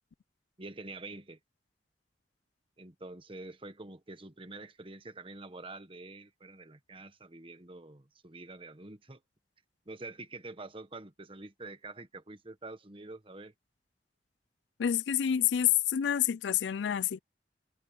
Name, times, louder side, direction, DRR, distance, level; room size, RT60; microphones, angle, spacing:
voice 1, 0.6-1.4 2.8-9.2 9.9-13.5, right 2 dB, 30° right, 1.4 m, -46 dB
voice 2, 14.8-17.2, left 10 dB, 80° left, 0.4 m, -28 dB
head